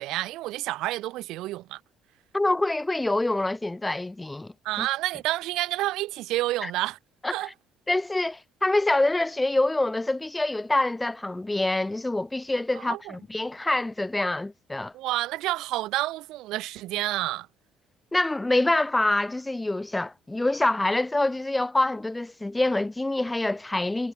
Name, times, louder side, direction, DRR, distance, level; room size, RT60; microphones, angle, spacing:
voice 1, 0.0-1.8 4.6-7.0 7.3-7.5 12.7-13.2 14.9-17.5, right 17 dB, 80° right, 6.4 m, -29 dB
voice 2, 2.3-4.9 6.6-6.7 7.2-7.3 7.9-14.9 18.1-24.1, left 2 dB, 10° left, 6.1 m, -26 dB
cardioid pair, 95°, 0 cm